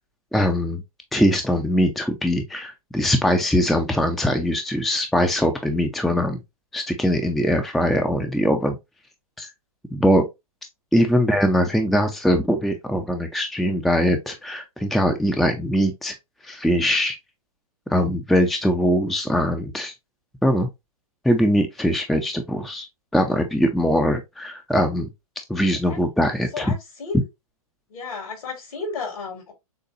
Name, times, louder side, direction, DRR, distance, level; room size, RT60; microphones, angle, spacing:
voice 1, 0.3-0.8 1.1-6.4 6.7-8.8 9.4-9.5 9.9-10.2 10.9-16.1 16.4-17.2 17.9-19.9 20.4-20.7 21.2-22.9 23.1-25.1 25.5-26.7, equal, ahead, 0.5 m, -21 dB
voice 2, 26.5-27.2 27.9-29.5, left 4 dB, 70° left, 2.8 m, -33 dB
6.6 x 2.3 x 2.7 m
hypercardioid pair, 130°, 19 cm